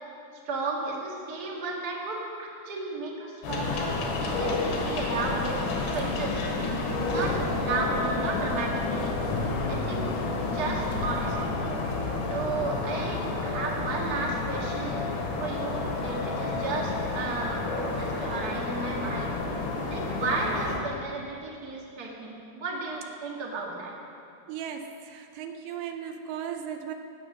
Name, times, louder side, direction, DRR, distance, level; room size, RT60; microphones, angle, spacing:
voice 1, 0.4-3.9 4.2-5.6 5.9-6.4 7.1-9.2 9.7-10.0 10.4-11.5 12.3-15.1 15.4-19.3 19.9-23.9, right 3 dB, 45° right, -2 dB, 1.2 m, -33 dB
sound 1, 3.4-20.8, left 3 dB, 85° left, 3.7 m, -30 dB
sound 2, 3.6-11.5, left 4 dB, 70° left, 1.7 m, -37 dB
voice 2, 24.5-26.9, right 8 dB, 85° right, 6 dB, 2.7 m, -37 dB
16.0 x 8.5 x 6.2 m, 2.5 s
omnidirectional pair, 4.5 m